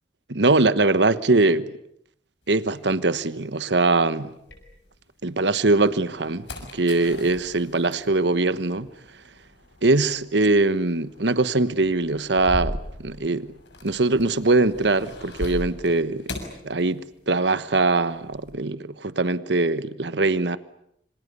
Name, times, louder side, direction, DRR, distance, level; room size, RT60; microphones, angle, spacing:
voice 1, 0.3-1.7 2.5-4.3 5.2-6.5 6.7-8.9 9.8-13.5 13.8-16.3 16.6-20.6, right 2 dB, 70° right, 1.2 m, -22 dB
sound 1, 2.5-5.2 5.7-17.5 17.7-18.5, left 1 dB, 75° left, 6.4 m, -39 dB
26.5 x 25.5 x 8.3 m
head